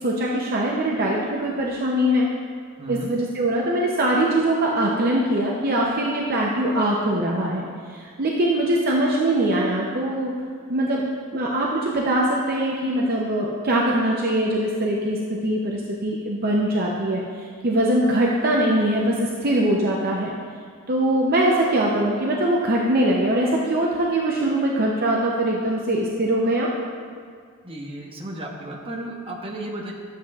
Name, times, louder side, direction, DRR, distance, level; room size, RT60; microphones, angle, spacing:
voice 1, 0.0-2.3 2.9-10.3 10.7-11.0 11.3-20.3 20.9-26.7, right 1 dB, 45° right, -3 dB, 0.7 m, -22 dB
voice 2, 2.8-3.1 27.6-29.9, right 1 dB, 25° right, -1 dB, 1.0 m, -34 dB
12.0 x 7.6 x 2.4 m, 2.1 s
head